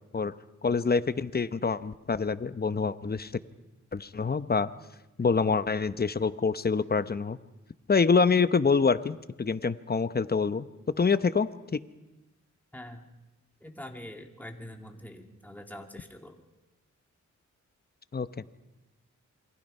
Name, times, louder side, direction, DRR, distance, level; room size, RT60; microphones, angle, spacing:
voice 1, 0.6-3.3 3.9-4.7 5.2-7.4 7.9-10.7 11.0-11.8 18.1-18.3, left 5 dB, 30° left, 13 dB, 0.9 m, -26 dB
voice 2, 12.7-13.1 13.6-16.4, left 1 dB, 5° left, 3 dB, 2.3 m, -44 dB
27.5 x 23.0 x 5.5 m, 1.0 s
cardioid pair, 80°, 30 cm